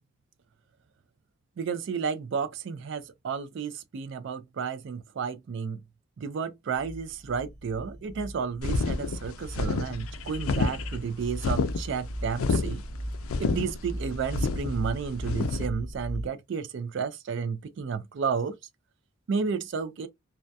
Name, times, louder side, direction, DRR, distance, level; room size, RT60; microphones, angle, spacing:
voice 1, 1.6-5.8 6.2-12.8 13.4-18.6 19.3-20.1, right 6 dB, 60° right, 0.3 m, -32 dB
sound 1, 6.8-16.3, equal, 5° left, 0.7 m, -38 dB
sound 2, 8.6-15.7, left 4 dB, 75° left, 0.4 m, -29 dB
2.3 x 2.2 x 2.6 m
head